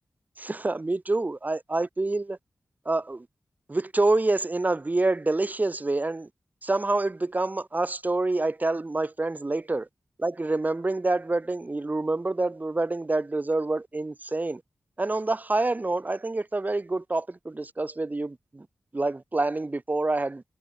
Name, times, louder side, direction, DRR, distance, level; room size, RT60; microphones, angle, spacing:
voice 1, 0.4-2.4 2.8-3.3 3.7-6.3 6.6-9.9 10.2-14.6 15.0-18.7 18.9-20.4, right 2 dB, 30° right, 1.0 m, -27 dB
cardioid pair, 55°, 5 cm